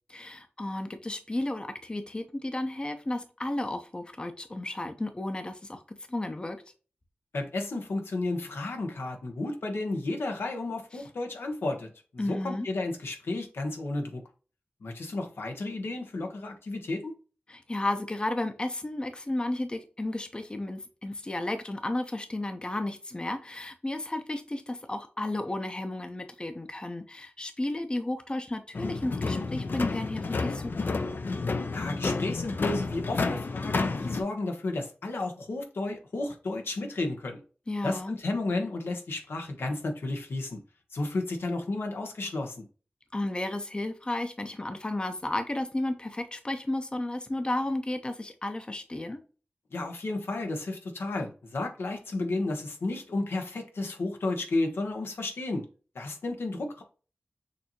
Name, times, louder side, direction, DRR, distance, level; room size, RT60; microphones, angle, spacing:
voice 1, 0.1-5.8 6.1-6.6 12.2-12.7 17.5-31.0 37.7-38.2 43.1-49.2, left 1 dB, 25° left, 0.7 m, -33 dB
voice 2, 7.3-14.2 14.8-17.1 31.7-37.4 37.8-40.6 40.9-42.6 49.7-55.6 55.9-56.8, left 2 dB, 85° left, 1.0 m, -32 dB
sound 1, 28.7-34.2, left 3 dB, 60° left, 0.5 m, -30 dB
6.6 x 2.7 x 2.9 m
wide cardioid pair, 85°, 4 cm